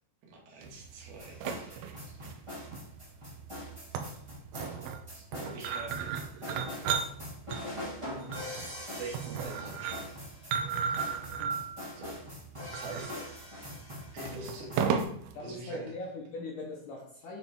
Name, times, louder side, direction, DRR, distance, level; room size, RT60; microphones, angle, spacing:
voice 1, 0.3-2.2 5.1-6.1 8.9-10.1 11.9-12.2 12.7-13.2 14.1-14.7 15.4-15.9, right 3 dB, 65° right, -2 dB, 3.3 m, -44 dB
sound 1, 0.6-15.3, right 7 dB, 85° right, 2.2 m, -36 dB
sound 2, 1.2-15.0, left 1 dB, 50° right, 0.3 m, -43 dB
voice 2, 14.2-14.7 15.3-17.4, left 2 dB, 75° left, -2 dB, 1.9 m, -42 dB
8.2 x 4.2 x 3.5 m, 0.66 s
omnidirectional pair, 4.9 m